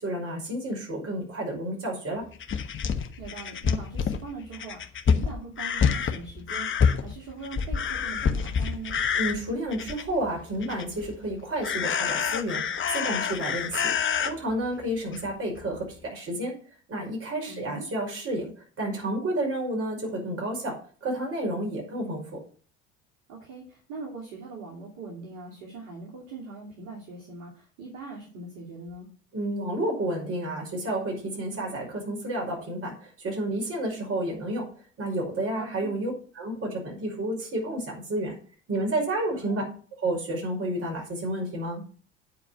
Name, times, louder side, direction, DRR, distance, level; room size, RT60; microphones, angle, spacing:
voice 1, 0.0-2.2 9.1-12.6 12.9-13.9 14.2-16.5 16.9-18.5 18.8-20.8 21.0-22.4 29.3-34.7 35.0-38.4 38.7-39.6 40.0-41.8, right 1 dB, 40° right, -1 dB, 5.8 m, -30 dB
sound 1, 2.3-10.2 10.6-11.1 11.6-14.3 15.1-15.2 15.6-15.7, left 6 dB, 35° left, 1.2 m, -27 dB
voice 2, 3.2-9.0 17.5-17.8 23.3-29.1 35.6-35.9 39.3-39.6, right 4 dB, 55° right, -4 dB, 2.9 m, -41 dB
9.3 x 4.8 x 7.3 m, 0.43 s
figure-of-eight pair, 60°, 36 cm